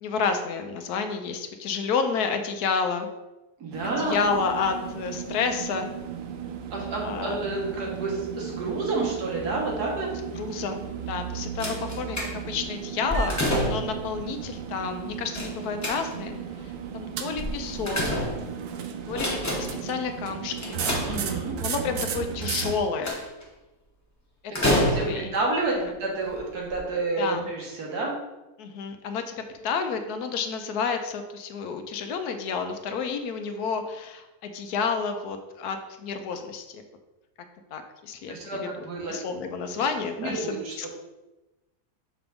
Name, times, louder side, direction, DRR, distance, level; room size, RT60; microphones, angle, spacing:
voice 1, 0.0-3.1 3.8-5.9 7.0-7.4 10.4-18.0 19.1-20.8 21.6-23.2 24.6-25.4 25.7-25.9 27.2-27.5 28.6-36.8 37.7-38.3 38.6-38.7 39.1-40.9, left 5 dB, 80° left, 7 dB, 1.2 m, -30 dB
voice 2, 3.6-4.2 6.7-10.1 21.0-21.6 24.6-28.1 38.3-39.2 39.7-39.9 40.2-40.9, right 3 dB, 85° right, -2 dB, 1.9 m, -29 dB
sound 1, 3.7-22.8, right 8 dB, 70° right, 0.9 m, -35 dB
sound 2, 11.6-12.6 13.1-14.0 15.3-16.4 17.4-18.7 19.1-19.9 20.6-21.6 22.6-23.4 24.5-25.4 26.2-26.3 26.7-26.8, equal, 15° left, 0.8 m, -28 dB
6.0 x 3.4 x 5.2 m, 1.1 s
omnidirectional pair, 1.6 m